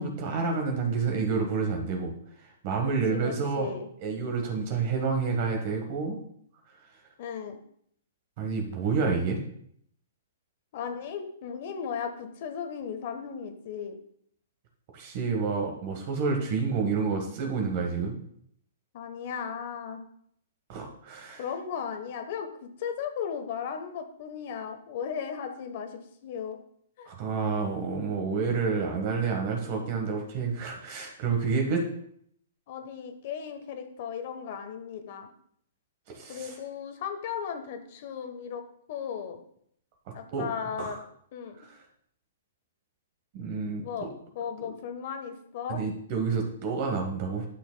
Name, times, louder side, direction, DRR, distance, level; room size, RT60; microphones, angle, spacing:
voice 1, 0.0-2.1 2.6-3.7 4.0-6.2 8.4-9.4 14.9-18.2 20.7-21.4 27.0-31.9 36.1-36.6 40.3-40.5 40.8-41.0 41.6-41.8 43.3-44.1 45.7-47.4, right 5 dB, 45° right, 2 dB, 1.3 m, -29 dB
voice 2, 3.1-3.9 7.2-7.6 10.7-13.9 18.9-20.0 21.4-26.6 27.0-27.1 32.7-35.3 36.3-38.6 38.9-39.4 40.1-41.0 41.3-41.6 43.8-44.1 44.3-45.8, left 7 dB, 50° left, 6 dB, 1.0 m, -36 dB
10.0 x 6.2 x 2.2 m, 0.66 s
hypercardioid pair, 140°, 0 cm